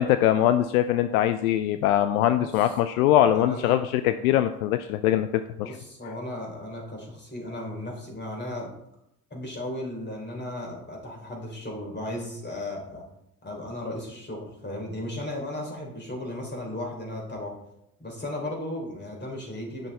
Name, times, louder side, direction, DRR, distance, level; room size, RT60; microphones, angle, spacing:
voice 1, 0.0-5.3 5.6-5.7, left 12 dB, 75° left, 10 dB, 0.5 m, -22 dB
voice 2, 2.4-2.8 3.2-3.8 5.6-8.7 9.3-13.0 13.4-17.5 18.0-19.9, left 1 dB, 25° left, 0 dB, 3.5 m, -35 dB
9.0 x 6.2 x 4.0 m, 0.81 s
figure-of-eight pair, 55°, 43 cm